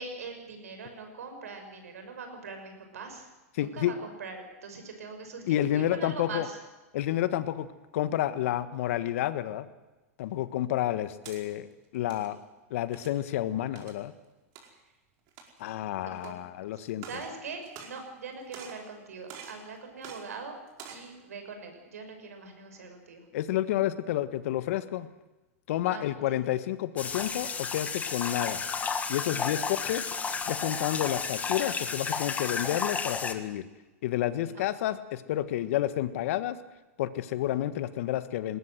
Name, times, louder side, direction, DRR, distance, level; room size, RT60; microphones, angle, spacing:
voice 1, 0.0-3.3 3.6-6.6 16.0-16.4 16.8-20.6 20.9-23.2 25.8-26.5 29.3-29.8 34.4-34.6, right 4 dB, 85° right, 5 dB, 5.8 m, -42 dB
voice 2, 3.5-3.9 5.5-6.5 6.9-7.7 7.9-9.6 10.2-11.7 11.9-12.4 12.7-14.1 15.6-17.1 23.3-25.1 25.7-28.6 29.1-30.0 30.5-33.6 34.0-36.6 37.0-38.6, left 13 dB, 65° left, 13 dB, 1.5 m, -30 dB
sound 1, 11.0-11.4 11.9-12.3 12.9-13.2 13.8-14.0 14.6-14.7 15.3-15.7 16.2-16.3 16.9-17.3 17.6-18.2 18.5-18.9 19.3-19.6 20.0-20.2 20.7-21.1, right 7 dB, 50° right, 4.9 m, -46 dB
sound 2, 27.0-33.3, left 5 dB, 20° left, 1.8 m, -32 dB
20.0 x 18.5 x 7.9 m, 1.1 s
hypercardioid pair, 115°, 8 cm